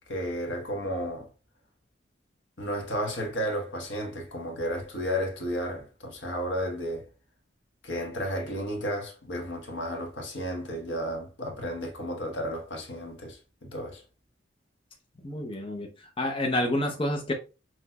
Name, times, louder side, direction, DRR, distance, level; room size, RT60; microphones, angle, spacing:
voice 1, 0.1-1.3 2.6-7.1 7.8-14.0, equal, 70° left, 1.2 m, -33 dB
voice 2, 15.2-15.9 16.2-17.3, left 1 dB, 25° left, 0.6 m, -28 dB
5.9 x 3.1 x 2.2 m
head